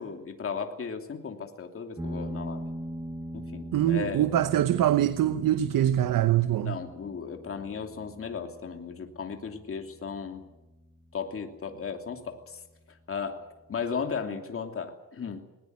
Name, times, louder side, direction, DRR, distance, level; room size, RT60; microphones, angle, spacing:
voice 1, 0.0-2.6 3.3-4.2 6.6-10.5 11.1-12.6 12.9-15.4, left 6 dB, 40° left, 2.9 m, -36 dB
sound 1, 2.0-11.0, equal, 10° right, 1.7 m, -41 dB
voice 2, 3.7-6.7, right 11 dB, 65° right, 1.0 m, -24 dB
20.5 x 19.0 x 9.4 m
cardioid pair, 135°, 35 cm